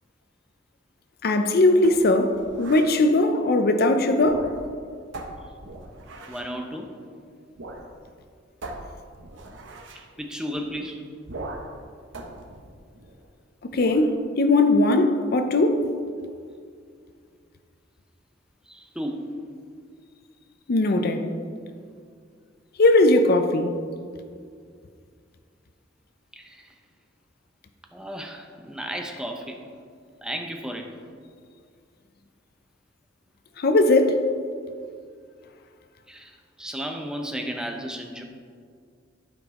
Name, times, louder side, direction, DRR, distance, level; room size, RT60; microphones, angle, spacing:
voice 1, 1.2-4.5 13.6-15.9 20.7-21.3 22.8-23.8 33.6-34.2, left 2 dB, 55° left, 0.5 m, -19 dB
sound 1, 1.8-3.0 4.1-4.8 5.1-6.5 7.6-7.9 8.1-8.2 8.6-10.1 11.2-11.8 12.1-13.3 13.7-14.1, right 2 dB, 75° right, 0.9 m, -40 dB
voice 2, 6.3-7.0 10.0-11.0 18.7-19.4 26.3-26.7 27.9-29.6 30.2-30.9 36.1-38.2, equal, 5° right, 0.6 m, -34 dB
12.0 x 5.2 x 3.6 m
head